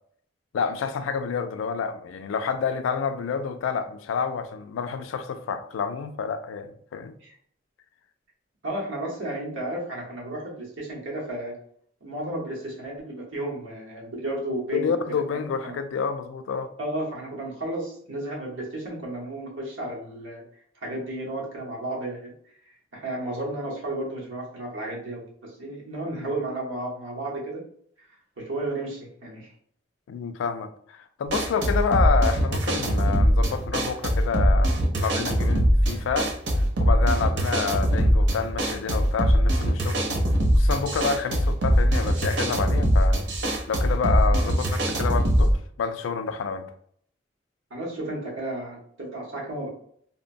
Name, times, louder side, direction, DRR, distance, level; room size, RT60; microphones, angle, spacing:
voice 1, 0.5-7.2 14.7-16.7 26.1-26.3 30.1-36.3 36.8-40.1 40.5-43.2 43.7-46.7, left 6 dB, 85° left, 0.3 m, -29 dB
voice 2, 8.6-11.5 12.0-14.9 15.3-15.8 16.8-20.4 20.8-22.3 22.7-27.6 28.4-29.5 47.7-49.7, right 1 dB, 85° right, 1.0 m, -33 dB
sound 1, 31.3-45.5, equal, 60° right, 0.5 m, -22 dB
2.9 x 2.0 x 2.5 m
head